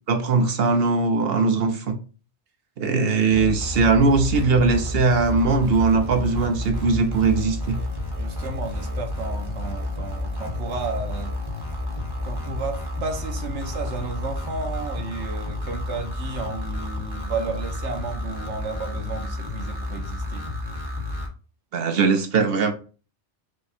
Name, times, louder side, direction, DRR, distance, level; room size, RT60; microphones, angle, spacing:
voice 1, 0.1-2.0 2.8-7.8 21.7-22.7, right 4 dB, 60° right, 0.9 m, -20 dB
sound 1, 3.3-21.3, left 2 dB, 20° right, 1.2 m, -30 dB
voice 2, 8.1-11.3 12.2-20.5, right 4 dB, 75° right, 1.3 m, -33 dB
5.0 x 2.3 x 4.2 m
omnidirectional pair, 1.2 m